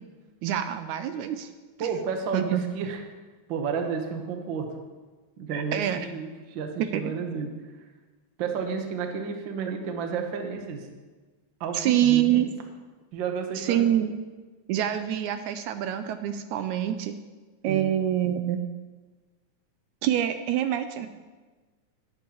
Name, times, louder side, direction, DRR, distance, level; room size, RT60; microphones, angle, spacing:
voice 1, 0.4-1.5 1.8-1.9 2.3-2.6 5.5-6.0 6.8-7.0 11.7-12.5 13.6-14.1 14.7-17.1 17.6-18.6 20.0-21.1, right 11 dB, 80° right, 9 dB, 1.9 m, -26 dB
voice 2, 1.8-3.0 3.5-4.7 5.4-5.8 6.1-7.5 8.4-10.9 11.6-12.4 13.1-13.8 17.7-17.9, right 5 dB, 60° right, 4 dB, 1.3 m, -31 dB
17.5 x 9.0 x 3.0 m, 1.3 s
omnidirectional pair, 3.5 m